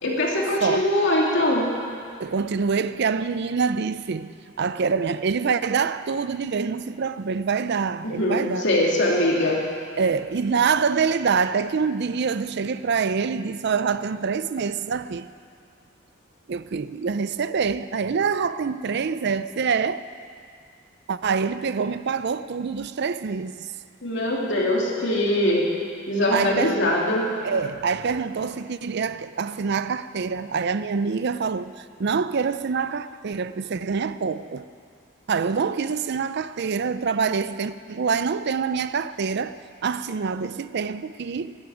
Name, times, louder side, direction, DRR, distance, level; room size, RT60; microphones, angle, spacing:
voice 1, 0.0-1.6 8.0-9.6 24.0-25.7 26.1-27.2, left 1 dB, 65° left, 2.9 m, -22 dB
voice 2, 2.2-8.7 10.0-15.3 16.5-20.1 21.1-23.7 26.3-26.8 27.4-34.7 35.3-39.6 39.8-41.6, right 5 dB, 60° right, 0.5 m, -25 dB
12.0 x 11.5 x 9.1 m
head